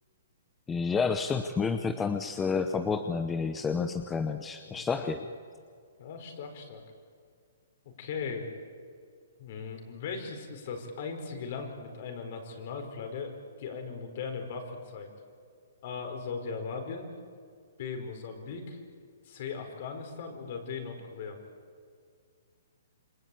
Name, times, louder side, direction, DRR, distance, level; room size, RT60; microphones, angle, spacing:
voice 1, 0.7-5.3, left 5 dB, 10° left, 7 dB, 0.8 m, -30 dB
voice 2, 4.6-5.2 6.0-6.8 7.8-8.5 9.4-15.1 15.8-17.1 17.8-18.8 19.2-21.4, left 5 dB, 45° left, 4 dB, 4.8 m, -38 dB
27.5 x 24.5 x 8.6 m, 2.2 s
hypercardioid pair, 160°, 0 cm